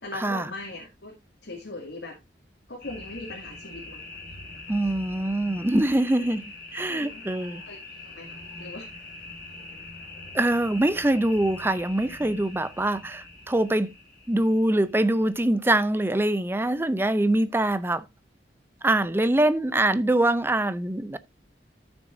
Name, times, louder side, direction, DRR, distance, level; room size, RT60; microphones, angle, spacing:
voice 1, 0.0-1.1 1.4-2.2 2.7-4.0 6.2-6.4 6.9-7.2 7.7-7.8 8.1-8.9, left 2 dB, 80° left, 2.3 m, -39 dB
sound 1, 2.8-15.4, left 2 dB, 55° left, 3.3 m, -43 dB
voice 2, 4.7-6.4 6.7-7.6 10.3-13.9 14.3-18.0 18.8-21.2, right 1 dB, 15° right, 0.5 m, -24 dB
13.5 x 6.2 x 2.6 m
head